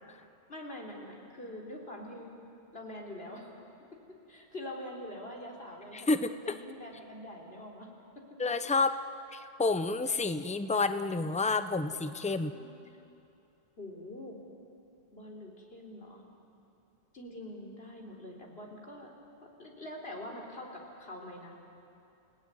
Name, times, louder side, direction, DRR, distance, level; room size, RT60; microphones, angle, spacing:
voice 1, 0.5-2.3 2.7-3.5 4.3-7.9 8.9-9.0 12.3-12.8 13.8-14.4 15.1-16.2 17.1-19.1 19.4-21.6, left 1 dB, 60° left, 0 dB, 3.8 m, -44 dB
voice 2, 5.9-6.3 8.4-9.0 9.3-12.5, left 3 dB, 10° left, 11 dB, 0.6 m, -29 dB
29.0 x 17.5 x 9.5 m, 2.8 s
omnidirectional pair, 1.1 m